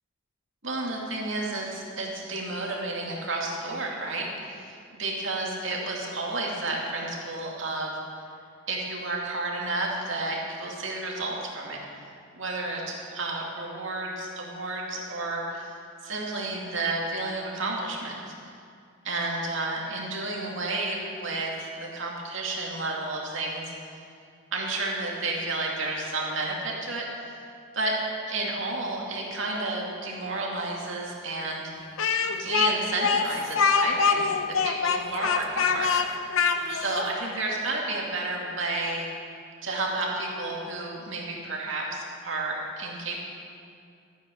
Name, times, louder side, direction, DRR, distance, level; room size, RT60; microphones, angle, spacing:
voice 1, 0.6-7.9 8.7-11.8 12.3-15.8 16.0-18.2 19.0-23.7 24.5-27.3 27.7-28.0 28.3-31.7 32.3-36.1 36.7-39.1 39.6-43.2, right 2 dB, 65° right, -2 dB, 2.4 m, -31 dB
Speech, 32.0-37.1, left 5 dB, 80° left, 0.8 m, -24 dB
13.5 x 9.3 x 6.4 m, 2.3 s
head